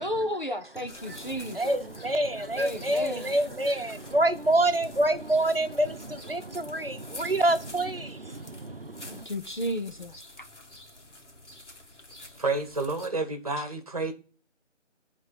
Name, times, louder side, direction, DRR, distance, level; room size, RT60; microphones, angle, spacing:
voice 1, 0.0-1.8 2.6-3.4 9.1-10.5, equal, 40° left, 0.7 m, -33 dB
sound 1, 0.9-13.1, left 2 dB, 65° left, 2.2 m, -48 dB
voice 2, 1.1-9.3, right 1 dB, 50° right, 0.9 m, -27 dB
voice 3, 12.3-14.1, right 3 dB, 30° right, 1.4 m, -29 dB
10.0 x 3.7 x 5.7 m
figure-of-eight pair, 165°, 37 cm